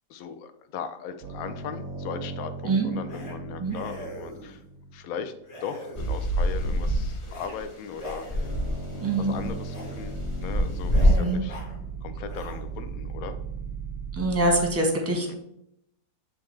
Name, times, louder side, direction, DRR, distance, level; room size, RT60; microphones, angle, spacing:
voice 1, 0.1-4.6 4.9-5.3 5.6-8.5 8.9-11.6 12.0-13.4 15.3-15.4, left 7 dB, 70° left, 9 dB, 0.9 m, -38 dB
sound 1, 1.2-5.3 8.0-14.7, right 4 dB, 70° right, 0.6 m, -37 dB
sound 2, 3.1-3.4 3.7-4.6 5.4-6.4 7.2-7.5 7.9-8.8 9.6-10.0 10.3-10.5 10.9-11.8 12.2-12.9, equal, 85° left, 2.0 m, -42 dB
sound 3, 5.9-7.7 8.0-11.1, equal, 40° left, 0.4 m, -26 dB
voice 2, 9.0-9.4 11.2-11.4 14.1-15.3, right 2 dB, 10° right, 1 dB, 0.7 m, -24 dB
8.4 x 3.5 x 3.2 m, 0.77 s
omnidirectional pair, 1.8 m